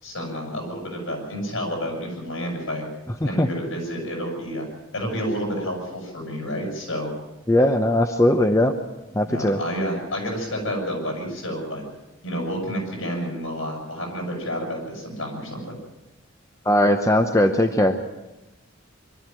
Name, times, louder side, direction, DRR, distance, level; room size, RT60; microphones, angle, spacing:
voice 1, 0.0-2.9 3.2-4.7 4.9-7.1 9.2-11.8 12.2-15.8, equal, 75° left, 1 dB, 7.9 m, -30 dB
voice 2, 7.5-8.7 9.1-9.6 16.6-18.0, left 1 dB, 15° left, 6 dB, 0.8 m, -19 dB
24.0 x 13.0 x 9.1 m, 1.0 s
head